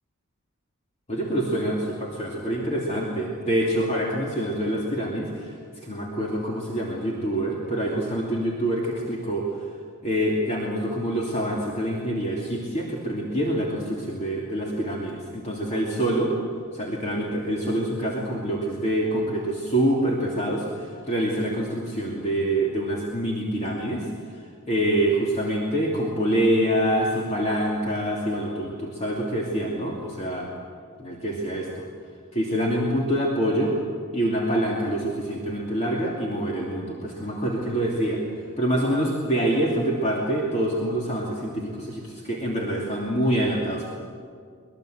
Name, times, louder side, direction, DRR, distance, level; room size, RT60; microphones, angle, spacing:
voice 1, 1.1-5.6 5.8-9.5 10.0-16.3 16.7-24.1 24.7-30.5 31.0-31.9 32.3-33.8 34.1-38.2 38.6-43.9, right 1 dB, 30° left, -3 dB, 2.7 m, -26 dB
23.5 x 21.0 x 7.9 m, 2.1 s
head